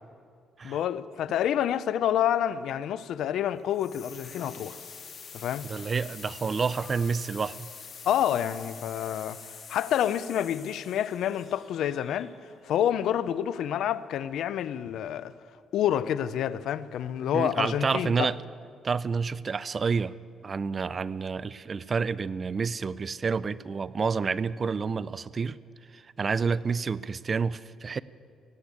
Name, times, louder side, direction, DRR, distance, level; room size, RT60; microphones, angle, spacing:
voice 1, 0.6-4.8 5.3-5.7 8.0-9.4 9.7-12.3 12.6-15.3 15.7-18.3, left 10 dB, 80° left, 0.5 m, -28 dB
sound 1, 3.7-12.6, left 6 dB, 50° left, 2.0 m, -46 dB
voice 2, 5.6-7.7 17.3-18.4 18.8-20.1 20.4-25.6 25.9-28.0, right 5 dB, 40° right, 0.4 m, -29 dB
18.0 x 8.1 x 8.3 m
cardioid pair, 90°, 0 cm